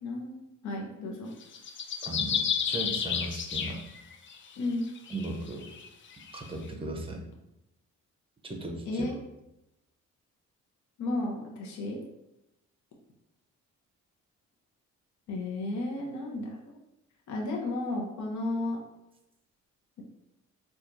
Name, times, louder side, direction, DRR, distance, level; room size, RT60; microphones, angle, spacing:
voice 1, 0.0-1.3 4.6-4.9 8.9-9.2 11.0-12.0 15.3-16.6 17.3-18.8, left 2 dB, 70° left, -1 dB, 0.8 m, -33 dB
sound 1, 1.4-4.4 5.0-6.5, left 7 dB, 40° left, 0.4 m, -32 dB
voice 2, 2.0-3.8 5.1-5.6 6.3-7.2 8.4-9.1, right 2 dB, 20° right, 3 dB, 0.6 m, -37 dB
4.2 x 2.4 x 2.6 m, 0.89 s
cardioid pair, 90°, 30 cm